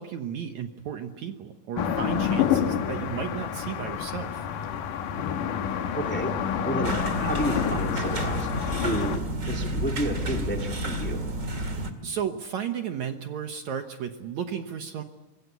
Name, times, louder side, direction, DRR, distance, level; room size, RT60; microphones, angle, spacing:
voice 1, 0.0-4.5 11.7-15.0, right 8 dB, 65° right, 6 dB, 2.2 m, -34 dB
sound 1, 1.8-9.2, left 8 dB, 70° left, 2.9 m, -28 dB
voice 2, 5.9-11.3, right 1 dB, 5° left, 3 dB, 1.7 m, -31 dB
sound 2, 6.8-11.9, right 1 dB, 30° right, 1.8 m, -30 dB
26.0 x 22.5 x 8.3 m, 1.1 s
omnidirectional pair, 4.1 m